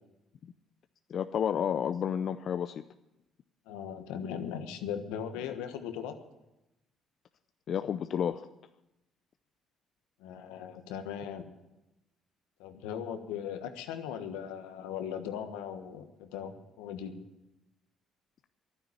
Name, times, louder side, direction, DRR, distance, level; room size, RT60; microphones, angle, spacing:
voice 1, 1.1-2.8 7.7-8.5, left 8 dB, 60° left, 10 dB, 0.5 m, -31 dB
voice 2, 3.7-6.2 10.2-11.4 12.6-17.1, left 8 dB, 85° left, 7 dB, 1.3 m, -38 dB
11.5 x 9.8 x 9.5 m, 0.95 s
supercardioid pair, 65°, 0 cm